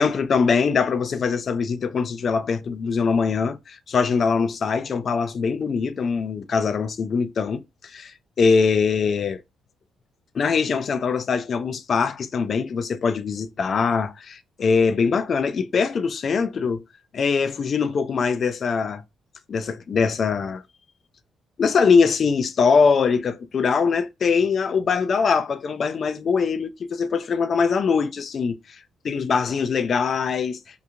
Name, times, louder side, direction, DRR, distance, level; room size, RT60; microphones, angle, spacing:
voice 1, 0.0-9.4 10.3-16.8 17.1-19.0 19.5-20.6 21.6-28.8 29.0-30.6, left 5 dB, 50° left, 0.3 m, -22 dB
2.8 x 2.4 x 2.4 m
cardioid pair, 90°, 0 cm